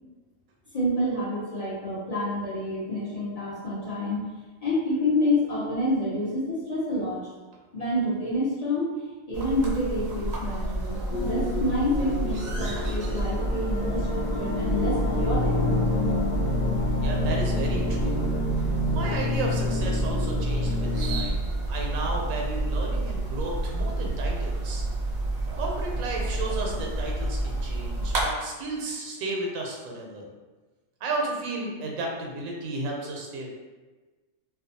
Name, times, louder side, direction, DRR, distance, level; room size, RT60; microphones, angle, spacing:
voice 1, 0.7-4.2 4.6-7.3 7.7-8.9 9.3-15.5, left 1 dB, 40° left, -10 dB, 0.5 m, -28 dB
sound 1, 9.3-28.2, right 2 dB, 50° right, 0.5 m, -29 dB
sound 2, 11.1-21.2, left 2 dB, 90° left, 0.4 m, -29 dB
voice 2, 17.0-18.4 18.9-24.8 25.6-30.3 31.0-33.5, right 2 dB, 80° right, 0 dB, 1.0 m, -33 dB
2.5 x 2.2 x 2.7 m, 1.3 s
omnidirectional pair, 1.4 m